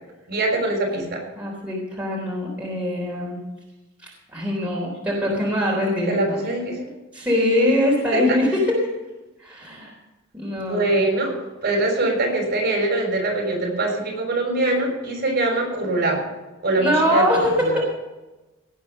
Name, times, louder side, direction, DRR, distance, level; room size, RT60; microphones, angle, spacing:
voice 1, 0.3-1.2 6.1-6.9 10.6-16.2 16.6-17.3 17.6-17.8, right 2 dB, 50° right, 0 dB, 6.2 m, -23 dB
voice 2, 1.4-3.4 4.0-6.4 7.1-8.8 9.4-10.0 10.3-11.0 16.8-17.8, left 1 dB, 5° right, -4 dB, 3.6 m, -23 dB
18.0 x 8.9 x 5.5 m, 1.1 s
head